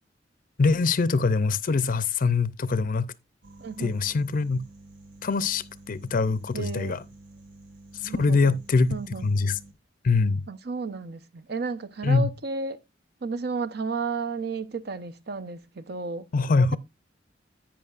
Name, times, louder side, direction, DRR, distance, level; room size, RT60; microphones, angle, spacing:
voice 1, 0.6-3.1 3.8-4.6 5.2-7.0 8.0-9.6 10.0-10.4 12.0-12.3 16.3-16.8, left 4 dB, 45° left, 0.5 m, -23 dB
sound 1, 3.4-9.7, right 2 dB, 85° right, 1.7 m, -50 dB
voice 2, 3.6-4.0 6.5-6.9 8.0-8.6 8.9-9.3 10.5-12.8 13.2-16.3, right 4 dB, 60° right, 0.7 m, -33 dB
11.0 x 8.7 x 2.4 m
head